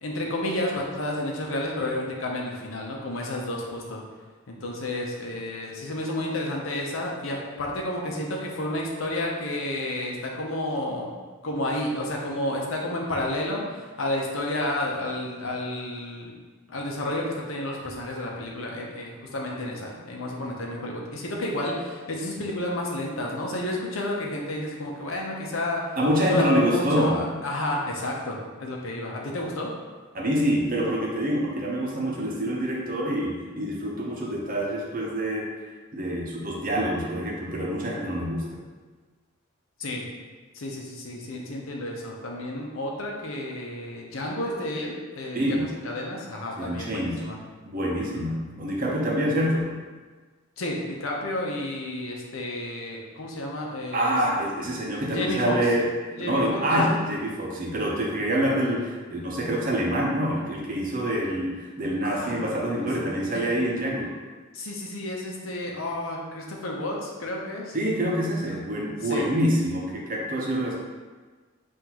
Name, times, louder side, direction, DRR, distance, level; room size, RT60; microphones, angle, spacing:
voice 1, 0.0-4.0 4.5-11.1 11.4-16.3 16.7-26.0 26.2-29.7 39.8-40.0 40.5-47.4 48.0-48.3 50.6-54.1 54.9-55.6 56.1-56.9 62.0-62.4 63.3-63.6 64.5-67.8 69.0-69.3, left 1 dB, 75° left, -1 dB, 0.7 m, -31 dB
voice 2, 26.0-27.2 30.1-35.5 35.9-38.4 45.3-45.6 46.6-47.2 47.7-49.7 53.9-55.9 56.2-64.1 67.7-70.8, equal, 40° right, -3 dB, 0.8 m, -26 dB
5.7 x 2.6 x 3.0 m, 1.4 s
head